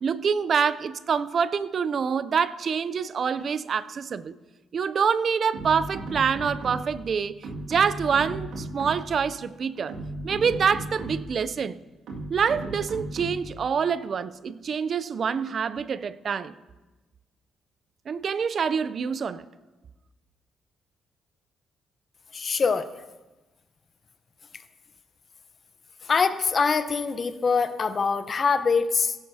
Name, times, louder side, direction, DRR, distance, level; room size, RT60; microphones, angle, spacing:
voice 1, 0.0-4.3 4.7-7.4 7.7-10.0 10.2-11.8 12.3-16.5 18.1-19.5, right 6 dB, 50° right, 0.5 m, -26 dB
sound 1, 5.5-7.1 7.4-9.2 9.8-11.4 12.1-13.6, right 2 dB, 85° right, 2.1 m, -36 dB
voice 2, 22.3-22.9 26.0-29.2, left 5 dB, 40° left, 0.8 m, -24 dB
16.5 x 12.5 x 2.8 m
cardioid pair, 90°, 0 cm